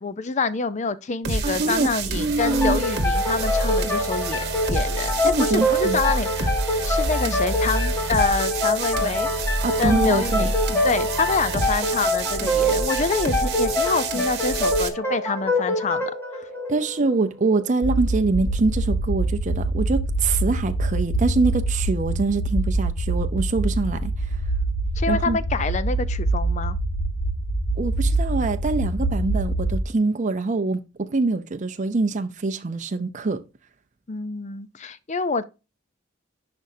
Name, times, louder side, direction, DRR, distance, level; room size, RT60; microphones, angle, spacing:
voice 1, 0.0-4.4 4.7-6.5 6.8-9.3 9.5-10.5 10.8-16.5 25.0-26.8 34.1-35.4, left 4 dB, 35° left, 0.5 m, -27 dB
sound 1, 1.2-14.9, right 3 dB, 55° right, 1.3 m, -27 dB
voice 2, 1.4-1.9 2.2-2.8 5.2-6.0 9.6-10.5 16.7-24.4 25.1-25.4 27.8-33.4, right 3 dB, 40° right, 0.5 m, -24 dB
sound 2, 2.4-17.7, left 1 dB, 15° left, 1.3 m, -25 dB
sound 3, 17.8-29.8, right 2 dB, 70° left, 1.5 m, -25 dB
10.5 x 5.2 x 2.7 m
head